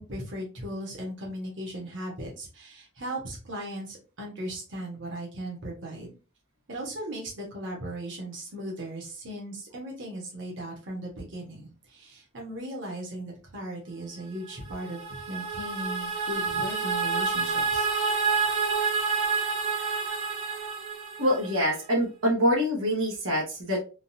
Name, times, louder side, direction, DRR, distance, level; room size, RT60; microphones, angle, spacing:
voice 1, 0.0-6.1 6.7-17.9, right 1 dB, 65° right, -1 dB, 1.3 m, -37 dB
sound 1, 14.5-21.7, right 5 dB, 35° right, 0.9 m, -28 dB
voice 2, 21.2-23.8, equal, 90° right, -2 dB, 1.3 m, -25 dB
3.8 x 2.4 x 2.7 m, 0.33 s
head